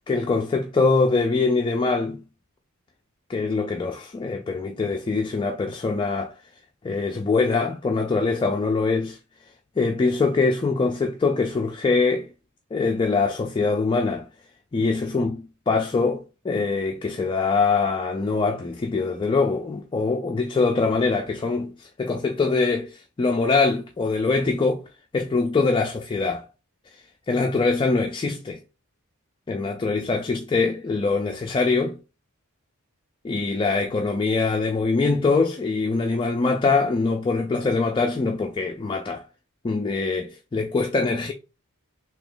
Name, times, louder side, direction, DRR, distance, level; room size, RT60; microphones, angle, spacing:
voice 1, 0.1-2.2 3.3-6.3 6.8-9.2 9.8-12.3 12.7-14.3 14.7-24.8 25.1-26.4 26.9-28.6 29.5-32.0 33.2-39.2 39.6-41.3, left 4 dB, 20° left, 0.3 m, -23 dB
3.0 x 2.8 x 3.7 m
head